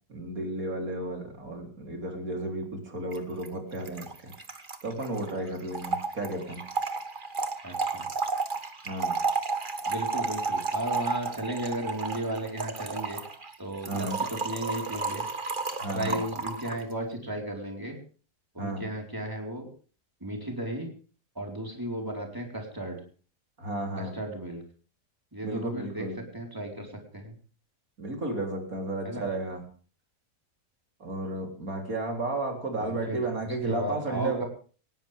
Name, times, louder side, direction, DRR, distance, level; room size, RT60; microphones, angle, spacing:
voice 1, 0.1-4.3 4.8-6.6 8.8-9.2 13.9-14.2 15.8-16.2 18.6-18.9 23.6-24.2 25.4-26.2 28.0-29.7 31.0-34.5, right 2 dB, 55° right, 3 dB, 4.1 m, -33 dB
Trickle dribble / Fill (with liquid), 3.1-3.2 3.4-3.5 3.7-16.8, right 4 dB, 30° right, 1.6 m, -32 dB
voice 2, 7.6-8.0 9.9-13.2 13.6-15.2 15.9-18.0 18.5-19.7 20.2-20.9 21.4-23.0 24.0-24.6 25.3-26.0 26.3-26.9 27.1-27.3 29.0-29.2 32.8-33.2 33.7-34.5, right 1 dB, 10° right, 1 dB, 4.5 m, -34 dB
19.0 x 17.5 x 3.6 m, 0.40 s
omnidirectional pair, 1.7 m